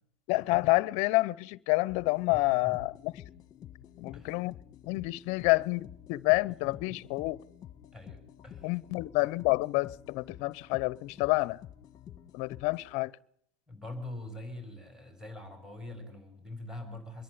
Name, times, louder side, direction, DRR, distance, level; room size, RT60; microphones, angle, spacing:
voice 1, 0.3-3.1 4.0-4.5 4.9-7.4 8.6-11.6 12.3-13.1, left 23 dB, 50° left, 0.8 m, -28 dB
sound 1, 1.9-12.9, left 11 dB, 25° left, 1.4 m, -50 dB
voice 2, 2.3-2.8 4.1-4.4 6.5-7.0 7.9-8.8 13.7-17.2, left 2 dB, 5° right, 3.9 m, -44 dB
24.0 x 11.0 x 9.7 m
supercardioid pair, 130°, 15 cm